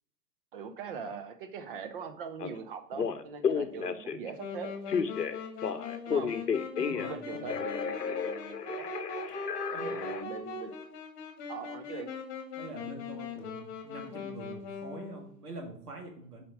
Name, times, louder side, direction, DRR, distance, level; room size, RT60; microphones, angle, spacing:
voice 1, 0.5-4.7 6.1-6.4 7.0-8.9 9.7-10.7 11.5-12.1, right 6 dB, 35° right, 8 dB, 0.8 m, -41 dB
Telephone, 2.4-2.5 2.9-4.3 4.9-7.2 7.5-10.2, left 6 dB, 75° left, 0.8 m, -32 dB
Wind instrument woodwind instrument, 4.4-15.3, left 4 dB, 25° left, 1.6 m, -40 dB
voice 2, 6.8-7.6 9.7-10.0 12.6-16.4, right 2 dB, 65° right, 1 dB, 2.3 m, -45 dB
6.9 x 5.2 x 4.9 m, 0.65 s
figure-of-eight pair, 115°, 49 cm